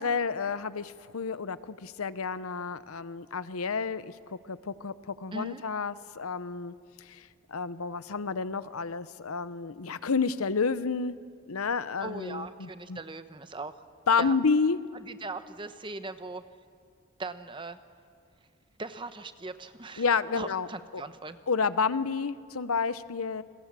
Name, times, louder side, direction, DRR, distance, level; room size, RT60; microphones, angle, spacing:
voice 1, 0.0-11.2 11.5-13.0 14.1-14.8 20.0-20.7 21.5-23.4, left 5 dB, 85° left, 15 dB, 0.8 m, -30 dB
voice 2, 5.3-5.6 12.0-13.7 14.2-14.4 14.9-16.4 17.2-17.8 18.8-20.0 20.3-21.4, right 3 dB, 20° right, 11 dB, 0.9 m, -39 dB
29.0 x 22.5 x 7.5 m, 2.2 s
head